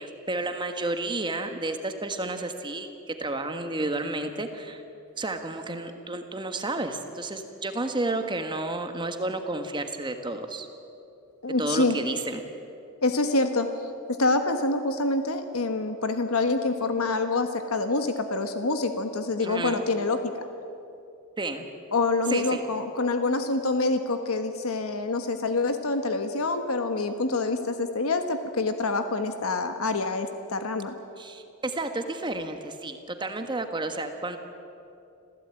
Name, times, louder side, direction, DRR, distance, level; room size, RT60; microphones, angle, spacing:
voice 1, 0.0-4.8 5.2-10.7 11.6-12.4 19.4-19.8 21.4-21.6 22.3-22.6 31.2-34.4, right 2 dB, 20° right, 6 dB, 1.4 m, -31 dB
voice 2, 11.4-12.0 13.0-13.7 14.2-20.4 21.9-30.9, left 3 dB, 80° left, 7 dB, 1.3 m, -26 dB
26.0 x 16.0 x 9.0 m, 2.7 s
head